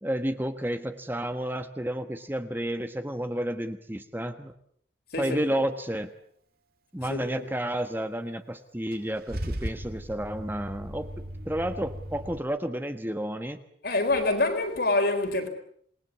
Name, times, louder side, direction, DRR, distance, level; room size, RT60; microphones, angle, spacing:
voice 1, 0.0-4.5 5.2-6.1 6.9-11.1 11.4-13.6, right 1 dB, 10° right, 1.3 m, -31 dB
voice 2, 5.1-5.6 7.1-7.4 13.8-15.5, left 2 dB, 55° left, 4.3 m, -26 dB
Car / Engine starting / Idling, 8.9-12.4, equal, 50° right, 2.5 m, -37 dB
27.5 x 20.5 x 8.4 m
head